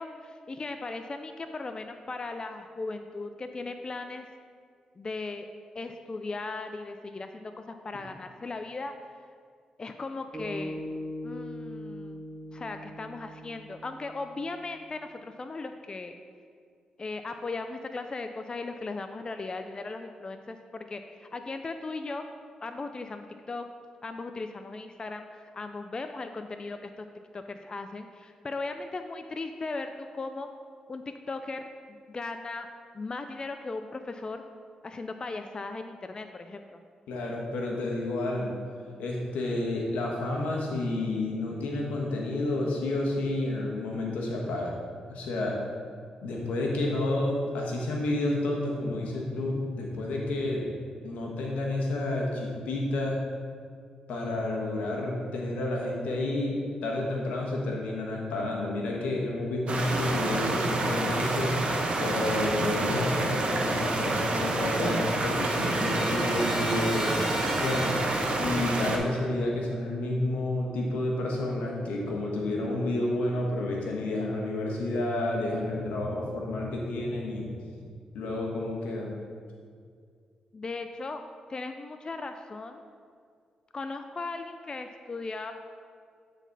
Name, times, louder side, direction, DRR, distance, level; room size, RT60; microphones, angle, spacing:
voice 1, 0.0-4.3 5.0-5.5 5.7-8.9 9.8-10.8 11.2-12.2 12.5-16.1 17.0-22.3 22.6-23.7 24.0-27.1 27.3-30.5 30.9-31.6 31.9-32.7 32.9-34.4 34.8-36.8 80.5-81.2 81.5-82.8 83.7-85.5, left 3 dB, 35° left, 7 dB, 0.4 m, -37 dB
sound 1, 10.3-14.7, left 1 dB, 25° right, 1.9 m, -40 dB
voice 2, 37.1-38.5 39.0-44.8 45.1-45.6 46.2-50.7 51.0-53.2 54.1-61.5 62.0-67.1 67.3-67.9 68.4-77.5 78.1-79.1, left 2 dB, 85° left, -1 dB, 1.2 m, -30 dB
sound 2, 59.7-69.0, right 2 dB, 50° right, 1.1 m, -28 dB
Trumpet, 64.2-68.6, left 1 dB, 5° left, 1.4 m, -38 dB
9.0 x 4.1 x 4.0 m, 2.1 s
cardioid pair, 60°, 2 cm